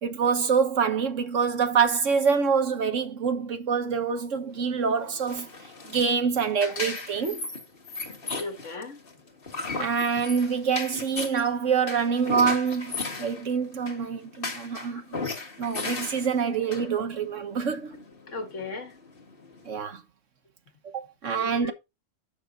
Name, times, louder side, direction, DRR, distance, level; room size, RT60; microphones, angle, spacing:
voice 1, 0.0-5.5 5.9-7.4 9.7-15.2 15.6-17.9 19.7-20.0 20.8-21.7, right 6 dB, 75° right, 1.5 m, -26 dB
sound 1, 4.5-19.7, left 3 dB, 45° left, 2.1 m, -37 dB
voice 2, 8.3-9.0 14.8-14.9 18.3-19.0 21.4-21.7, left 3 dB, 70° left, 1.8 m, -36 dB
8.9 x 6.0 x 3.9 m
omnidirectional pair, 1.3 m